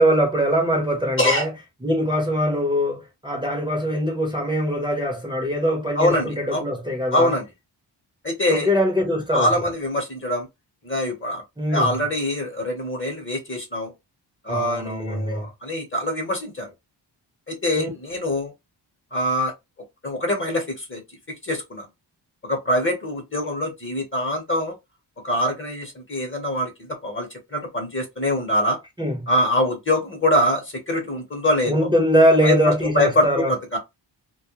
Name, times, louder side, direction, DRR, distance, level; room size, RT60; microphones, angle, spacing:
voice 1, 0.0-1.5 1.8-7.3 8.5-9.5 11.6-11.9 14.5-15.4 17.8-17.9 29.0-29.2 31.7-33.5, equal, 10° right, 0.7 m, -22 dB
voice 2, 1.2-1.5 5.9-6.6 7.1-7.5 8.2-8.7 9.3-10.5 10.8-11.4 11.7-13.9 14.4-16.7 17.5-18.5 19.1-19.5 20.0-21.0 21.4-21.9 22.4-24.7 25.2-28.8 29.3-31.9 32.4-33.8, left 1 dB, 30° left, 0.9 m, -24 dB
2.2 x 2.1 x 2.8 m
wide cardioid pair, 95°, 43 cm